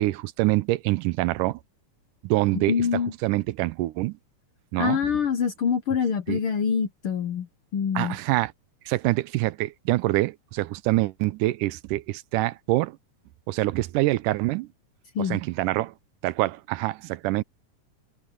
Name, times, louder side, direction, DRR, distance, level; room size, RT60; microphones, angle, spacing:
voice 1, 0.0-1.6 2.2-2.8 3.2-4.1 4.7-5.0 6.3-6.4 8.0-8.5 8.9-12.9 13.5-14.7 15.3-15.9 16.2-17.4, right 18 dB, 90° right, 2.2 m, -25 dB
voice 2, 2.5-3.1 4.8-7.5 7.7-8.2 15.1-15.4, left 7 dB, 65° left, 1.4 m, -25 dB
omnidirectional pair, 3.7 m